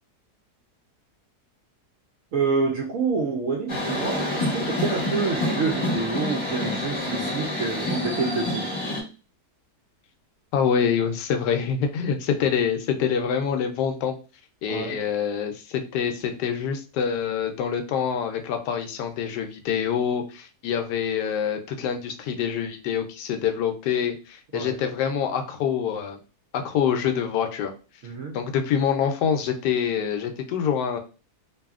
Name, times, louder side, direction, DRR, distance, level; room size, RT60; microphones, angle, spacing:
voice 1, 2.3-8.7 14.7-15.0 24.5-24.8 28.0-28.4, right 4 dB, 70° right, 0.8 m, -28 dB
sound 1, 3.7-9.0, left 1 dB, 25° left, 0.7 m, -27 dB
voice 2, 10.5-14.2 14.6-26.2 26.5-27.7 28.3-31.0, left 7 dB, 80° left, 1.1 m, -26 dB
2.7 x 2.6 x 2.3 m
omnidirectional pair, 1.8 m